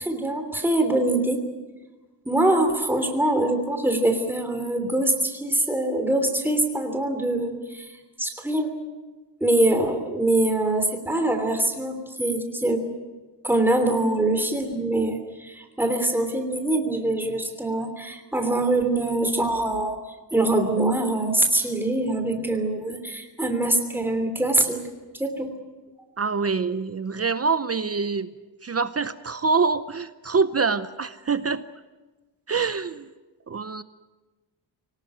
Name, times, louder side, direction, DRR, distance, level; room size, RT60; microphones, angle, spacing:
voice 1, 0.0-1.4 2.2-7.9 8.2-8.8 9.4-12.9 13.4-20.0 20.3-24.8 25.2-25.5, right 1 dB, 5° right, 5 dB, 3.1 m, -24 dB
voice 2, 26.2-28.3 28.6-31.6 32.5-33.1 33.5-33.8, right 4 dB, 35° right, 12 dB, 0.7 m, -25 dB
24.5 x 18.5 x 9.3 m, 1.2 s
wide cardioid pair, 145°, 44 cm